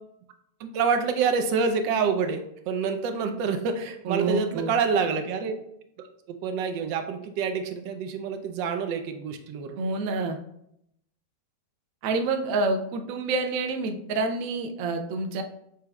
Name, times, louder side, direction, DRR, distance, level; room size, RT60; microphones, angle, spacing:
voice 1, 0.6-5.5 6.3-9.8, right 5 dB, 90° right, 7 dB, 1.3 m, -27 dB
voice 2, 4.0-4.7 9.8-10.4 12.0-15.4, right 3 dB, 70° right, 5 dB, 0.8 m, -27 dB
6.1 x 3.3 x 2.3 m, 0.76 s
omnidirectional pair, 1.9 m